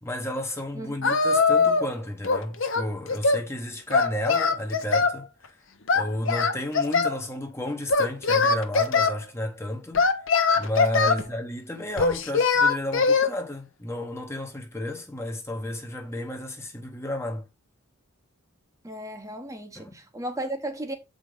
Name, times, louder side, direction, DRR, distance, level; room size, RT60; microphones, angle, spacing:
voice 1, 0.0-5.5 5.9-10.1 10.5-17.5 19.7-19.9, left 1 dB, 10° left, 0.9 m, -32 dB
voice 2, 0.7-1.1 11.1-11.3 15.6-15.7 18.8-20.9, right 1 dB, 15° right, 0.9 m, -35 dB
Singing, 1.0-1.9 2.2-3.5 3.9-5.2 5.9-7.2 7.9-9.1 9.9-11.2 12.0-13.3, left 4 dB, 60° left, 0.9 m, -22 dB
7.4 x 5.0 x 3.8 m
head